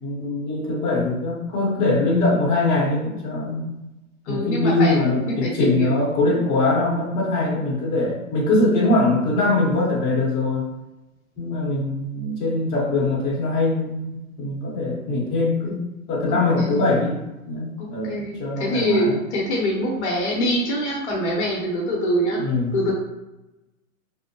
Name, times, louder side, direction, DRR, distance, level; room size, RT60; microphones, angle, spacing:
voice 1, 0.0-3.7 4.3-10.7 11.4-14.1 14.4-15.8 16.1-17.2 17.5-19.2 22.3-22.7, left 2 dB, 20° left, -6 dB, 0.8 m, -22 dB
voice 2, 4.3-6.0 15.6-15.7 16.3-17.0 17.8-22.4 22.7-22.9, equal, 50° left, -3 dB, 0.8 m, -25 dB
2.6 x 2.0 x 2.7 m, 0.96 s
hypercardioid pair, 135°, 43 cm